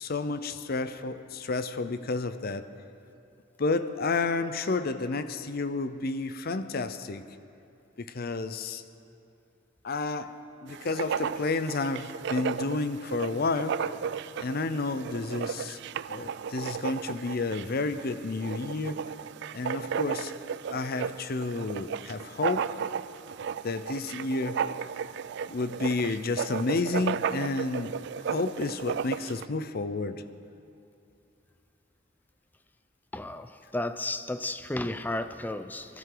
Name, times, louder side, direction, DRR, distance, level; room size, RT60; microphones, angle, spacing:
voice 1, 0.0-2.7 3.6-7.3 8.0-8.8 9.8-13.8 14.4-15.8 16.1-19.0 19.5-20.3 20.7-22.7 23.6-24.7 25.5-27.9 28.3-30.2, left 3 dB, 50° left, 11 dB, 0.6 m, -31 dB
Writing, 10.7-29.5, right 7 dB, 60° right, 0.3 m, -34 dB
voice 2, 33.1-36.0, left 1 dB, 10° left, 11 dB, 0.4 m, -33 dB
24.0 x 13.0 x 3.9 m, 2.6 s
head